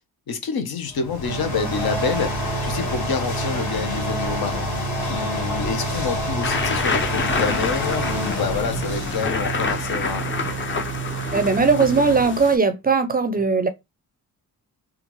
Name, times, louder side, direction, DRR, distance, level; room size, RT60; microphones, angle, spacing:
voice 1, 0.3-4.7 5.1-10.4, left 6 dB, 70° left, 0.9 m, -27 dB
sound 1, 0.9-10.1, left 2 dB, 50° left, 1.5 m, -28 dB
sound 2, 1.2-12.2, right 11 dB, 80° right, 0.5 m, -32 dB
sound 3, 6.4-12.6, left 4 dB, 30° left, 0.6 m, -27 dB
voice 2, 11.3-13.7, right 4 dB, 25° right, 0.4 m, -19 dB
3.5 x 2.4 x 3.0 m
cardioid pair, 105°, 38 cm